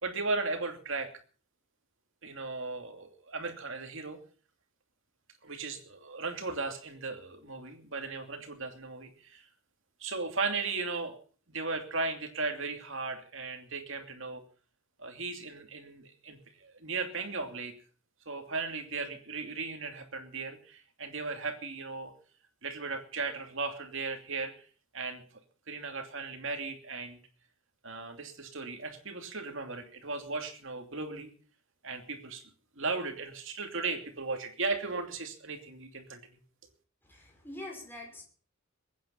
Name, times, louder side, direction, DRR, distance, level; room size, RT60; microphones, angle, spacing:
voice 1, 0.0-1.1 2.2-4.2 5.4-9.4 10.0-11.2 11.5-14.4 15.0-17.7 18.3-22.1 22.6-24.7 24.9-25.2 25.7-27.2 27.8-31.3 31.8-32.4 32.8-36.2, right 3 dB, 65° right, 5 dB, 2.7 m, -36 dB
voice 2, 37.0-38.2, left 1 dB, 10° left, 1 dB, 5.5 m, -44 dB
22.0 x 9.7 x 5.6 m, 0.41 s
head